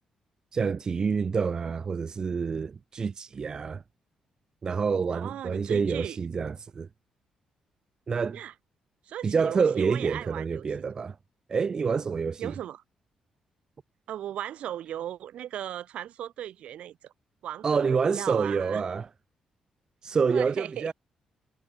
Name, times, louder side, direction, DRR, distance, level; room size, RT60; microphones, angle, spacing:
voice 1, 0.5-3.8 4.6-6.9 8.1-8.4 9.2-11.2 11.5-12.5 17.6-19.1 20.0-20.9, right 5 dB, 35° right, 0.9 m, -27 dB
voice 2, 5.1-6.2 8.3-8.5 9.1-10.7 12.4-12.8 14.1-17.1 17.4-18.8 20.3-20.9, right 11 dB, 75° right, 3.5 m, -37 dB
cardioid pair, 130°, 2 cm